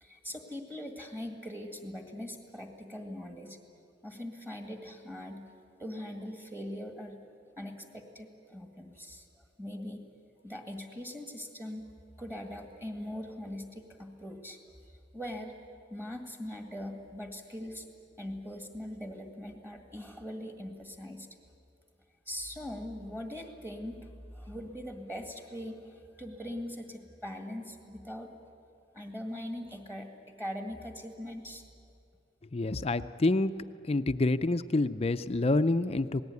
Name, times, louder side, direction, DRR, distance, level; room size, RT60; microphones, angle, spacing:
voice 1, 0.0-3.6 4.0-5.4 5.8-7.2 7.6-10.0 10.4-11.8 12.2-14.6 14.9-15.5 15.9-17.9 18.2-21.3 22.3-28.3 28.9-31.6, left 1 dB, 10° right, 4 dB, 1.9 m, -41 dB
voice 2, 32.5-33.5 33.8-36.2, left 2 dB, 35° left, 11 dB, 0.5 m, -27 dB
27.5 x 18.5 x 9.6 m, 2.5 s
head